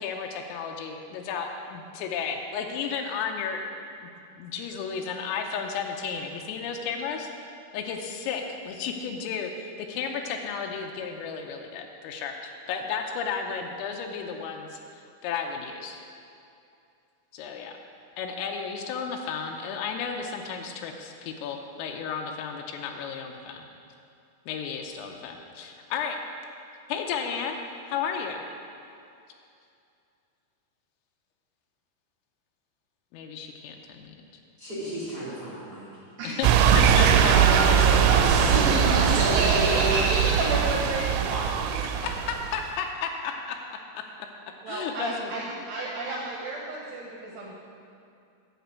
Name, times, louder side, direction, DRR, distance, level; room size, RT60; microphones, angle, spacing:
voice 1, 0.0-3.6 4.0-4.1 4.4-7.3 7.7-12.3 12.7-16.0 17.3-17.7 18.2-23.7 24.5-26.2 26.9-27.6 27.9-28.4 33.1-34.1 36.2-36.5 36.8-37.3 41.9-44.3 44.7-45.4, left 6 dB, 85° left, 2 dB, 3.4 m, -33 dB
voice 2, 34.6-35.9 36.7-40.0, right 1 dB, 45° right, -9 dB, 1.3 m, -30 dB
sound 1, 36.4-42.6, right 8 dB, 85° right, 3.1 m, -21 dB
voice 3, 38.1-42.3 44.6-47.6, right 1 dB, 70° right, -3 dB, 2.8 m, -30 dB
10.5 x 5.9 x 8.1 m, 2.6 s
omnidirectional pair, 5.8 m